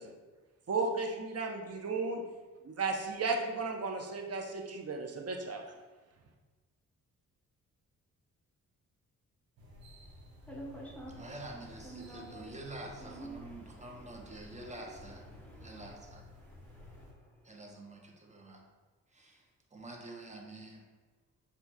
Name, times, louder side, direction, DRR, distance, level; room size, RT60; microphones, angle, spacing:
voice 1, 0.7-2.2 2.6-5.6, right 3 dB, 40° right, 2 dB, 0.9 m, -34 dB
sound 1, 9.6-17.1, left 1 dB, 75° right, 1.2 m, -53 dB
voice 2, 10.5-11.3 11.8-12.5 13.0-13.8 14.4-14.5 15.3-15.8 16.4-17.1, right 2 dB, 5° left, -2 dB, 1.5 m, -48 dB
voice 3, 11.2-15.3 15.6-16.2 17.4-18.7 19.1-20.8, right 2 dB, 20° right, 0 dB, 1.1 m, -47 dB
7.0 x 2.7 x 2.7 m, 1.3 s
supercardioid pair, 45°, 36 cm